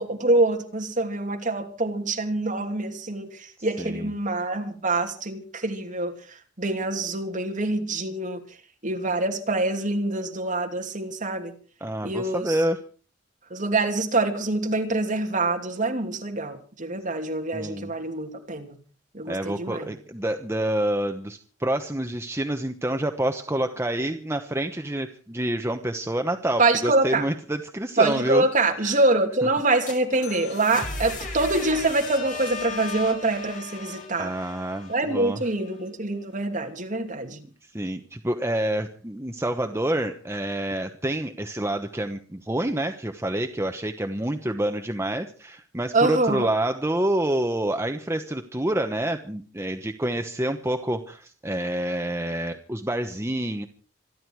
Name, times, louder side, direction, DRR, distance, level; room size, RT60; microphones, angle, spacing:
voice 1, 0.0-3.3 3.6-6.1 6.6-8.4 8.8-11.5 12.0-12.6 13.5-18.8 19.1-19.9 26.6-27.2 28.0-34.3 34.9-37.4 45.9-46.5, right 2 dB, 40° right, 2.9 m, -25 dB
voice 2, 3.8-4.1 11.8-12.8 17.5-17.9 19.3-28.5 28.8-29.0 30.2-30.3 34.2-35.4 37.6-53.7, right 1 dB, 15° right, 1.1 m, -28 dB
sound 1, 29.6-35.5, left 3 dB, 40° left, 5.4 m, -36 dB
26.5 x 11.0 x 4.8 m
head